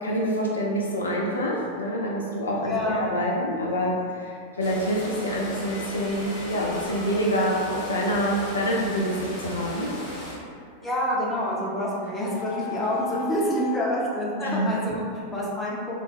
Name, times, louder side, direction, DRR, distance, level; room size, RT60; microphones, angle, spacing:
voice 1, 0.0-9.9 14.4-14.7, equal, 75° left, -3 dB, 0.4 m, -26 dB
voice 2, 2.6-3.1 10.8-16.0, equal, 15° left, -5 dB, 0.7 m, -27 dB
sound 1, 4.6-10.3, left 1 dB, 55° left, 0.9 m, -37 dB
sound 2, 8.6-9.4 11.8-13.8, left 6 dB, 85° right, 0.8 m, -36 dB
3.2 x 2.1 x 3.2 m, 2.2 s
figure-of-eight pair, 90°, 0 cm